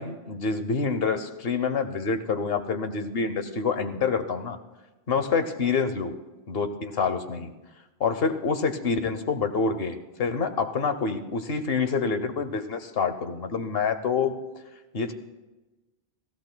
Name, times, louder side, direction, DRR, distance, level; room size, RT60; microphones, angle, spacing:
voice 1, 0.0-4.6 5.1-6.1 6.5-7.5 8.0-14.3 14.9-15.1, left 5 dB, 70° left, 8 dB, 1.1 m, -27 dB
30.0 x 16.0 x 2.2 m, 1.1 s
omnidirectional pair, 1.0 m